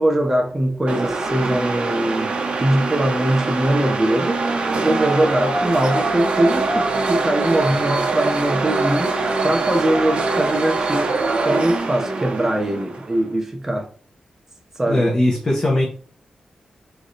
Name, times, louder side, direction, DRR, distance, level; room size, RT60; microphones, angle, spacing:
voice 1, 0.0-2.3 2.6-4.5 4.8-11.1 11.4-13.9 14.8-15.1, right 1 dB, 20° right, 0.9 m, -21 dB
sound 1, 0.9-13.2, right 3 dB, 55° right, 0.8 m, -23 dB
voice 2, 14.9-15.9, left 1 dB, 30° left, 1.0 m, -19 dB
3.7 x 3.4 x 4.1 m
wide cardioid pair, 130°, 2 cm